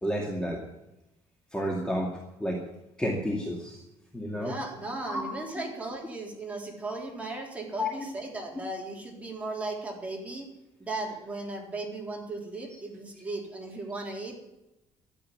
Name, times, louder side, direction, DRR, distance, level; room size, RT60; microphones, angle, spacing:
voice 1, 0.0-0.6 1.5-2.1 2.4-2.6 3.0-3.8 4.1-4.5 5.1-5.2 7.8-7.9, equal, 5° left, -1 dB, 2.3 m, -30 dB
voice 2, 4.3-10.5 10.8-14.3, right 2 dB, 15° right, 0 dB, 3.9 m, -36 dB
13.0 x 8.6 x 9.6 m, 0.92 s
cardioid pair, 135°, 11 cm